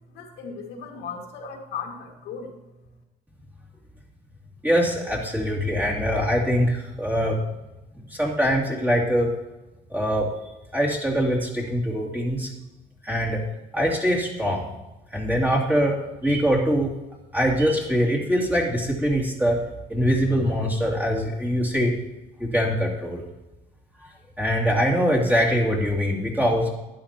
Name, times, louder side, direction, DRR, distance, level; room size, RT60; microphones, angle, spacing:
voice 1, 0.1-2.5, left 6 dB, 80° left, 1 dB, 2.1 m, -36 dB
voice 2, 4.6-7.4 8.2-9.3 9.9-10.3 10.7-12.5 13.0-13.4 13.7-14.7 15.1-16.9 17.3-19.6 19.9-22.0 22.4-23.2 24.4-26.7, equal, 10° right, -3 dB, 2.9 m, -23 dB
12.0 x 10.0 x 3.0 m, 1.0 s
cardioid pair, 110°, 17 cm